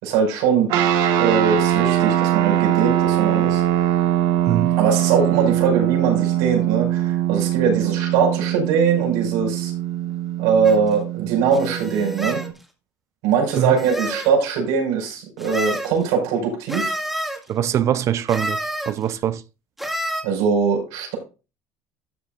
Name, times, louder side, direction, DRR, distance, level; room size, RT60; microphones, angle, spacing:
voice 1, 0.0-0.7 1.2-3.6 4.8-9.7 10.4-12.4 13.2-17.0 20.2-21.2, right 6 dB, 90° right, 5.4 m, -21 dB
sound 1, 0.7-12.5, right 11 dB, 75° right, 1.6 m, -22 dB
sound 2, 10.6-10.8 11.5-12.5 13.5-14.3 15.4-15.9 16.7-17.4 18.3-18.9 19.8-20.2, equal, ahead, 2.0 m, -28 dB
voice 2, 17.5-18.6 18.9-19.4, right 10 dB, 45° right, 0.5 m, -22 dB
13.0 x 7.4 x 2.5 m
cardioid pair, 135°, 7 cm